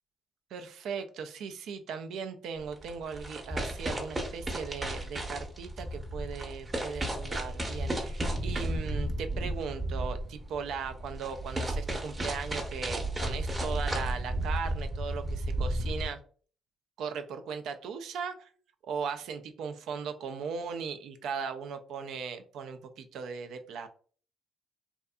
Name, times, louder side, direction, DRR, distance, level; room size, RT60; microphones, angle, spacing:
voice 1, 0.5-16.2 17.0-18.5 18.8-23.9, right 6 dB, 80° right, 8 dB, 0.3 m, -38 dB
sound 1, 2.6-16.1, right 1 dB, 25° right, 0.8 m, -33 dB
2.6 x 2.4 x 2.2 m, 0.43 s
cardioid pair, 90°, 0 cm